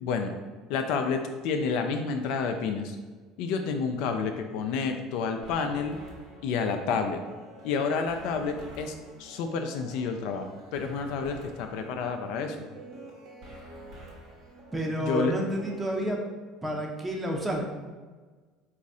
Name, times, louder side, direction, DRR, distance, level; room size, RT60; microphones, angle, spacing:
voice 1, 0.0-0.3 0.7-3.0 3.4-6.0 6.4-7.2 7.6-8.9 9.2-12.6 15.1-15.3, left 5 dB, 60° left, 5 dB, 0.3 m, -29 dB
sound 1, 5.4-16.1, right 1 dB, 50° right, 1.1 m, -47 dB
voice 2, 14.7-16.2 16.6-17.6, right 1 dB, 15° right, 0 dB, 0.8 m, -29 dB
3.9 x 2.4 x 3.6 m, 1.4 s
figure-of-eight pair, 65°, 0 cm